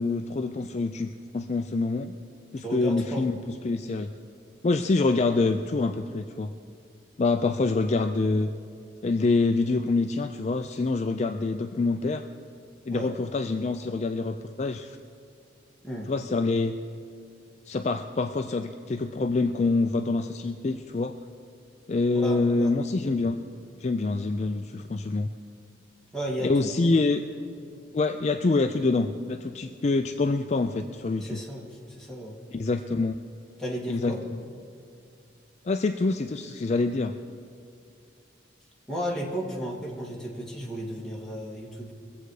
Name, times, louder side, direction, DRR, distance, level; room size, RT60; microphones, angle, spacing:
voice 1, 0.0-2.1 2.5-3.3 3.6-4.1 4.6-6.5 7.2-8.5 9.0-12.2 12.9-15.0 16.1-16.8 17.7-21.1 21.9-23.4 23.8-25.3 26.4-27.2 27.9-31.4 32.5-33.2 33.9-34.2 35.6-37.1, left 3 dB, 35° left, 7 dB, 0.4 m, -26 dB
voice 2, 2.6-3.2 7.6-7.7 12.9-13.2 15.8-16.1 22.1-22.7 26.1-26.8 31.2-32.4 33.6-34.2 38.9-41.9, equal, 5° left, -5 dB, 2.0 m, -34 dB
22.5 x 7.8 x 4.9 m, 2.4 s
head